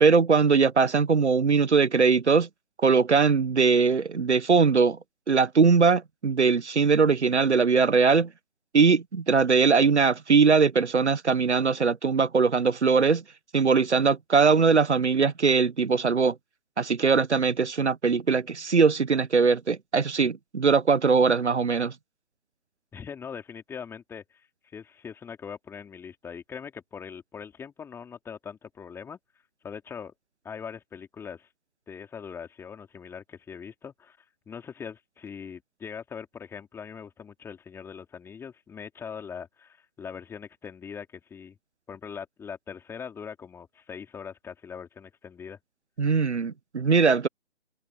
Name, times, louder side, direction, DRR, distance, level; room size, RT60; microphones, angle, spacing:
voice 1, 0.0-2.5 2.8-5.0 5.3-8.3 8.7-13.2 13.5-16.4 16.8-21.9 46.0-47.3, right 5 dB, 85° right, 0.8 m, -21 dB
voice 2, 22.9-24.5 24.7-29.2 29.6-30.1 30.4-31.5 31.9-34.2 34.5-41.6 41.9-45.6, left 7 dB, 5° left, 3.9 m, -41 dB
figure-of-eight pair, 140°, 33 cm